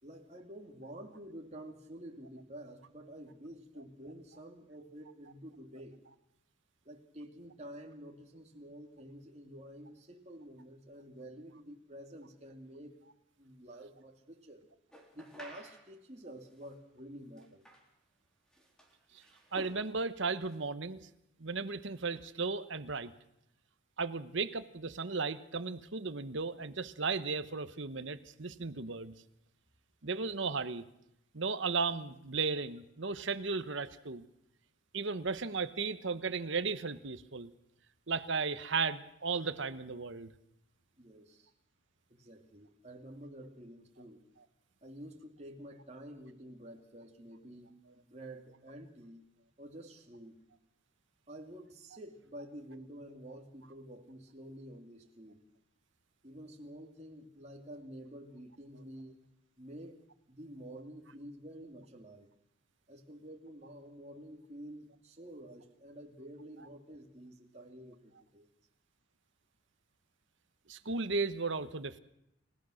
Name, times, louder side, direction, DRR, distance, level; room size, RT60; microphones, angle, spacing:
voice 1, 0.0-6.0 6.8-12.9 13.4-14.6 15.1-17.7 41.0-41.5 42.1-44.2 44.8-49.2 49.6-50.4 51.3-55.4 56.2-59.2 59.6-60.0 60.3-62.3 62.9-68.5, right 1 dB, 30° right, 2 dB, 2.7 m, -49 dB
sound 1, 14.9-15.9 16.6-16.7 17.4-17.9 18.5-19.9 20.2-20.6, equal, 5° left, 3.7 m, -52 dB
voice 2, 19.5-21.1 21.4-23.1 24.0-29.2 30.0-30.8 31.3-34.2 34.9-37.5 38.1-40.3 70.7-72.0, right 4 dB, 65° right, 12 dB, 1.1 m, -35 dB
29.5 x 16.0 x 6.5 m, 0.81 s
head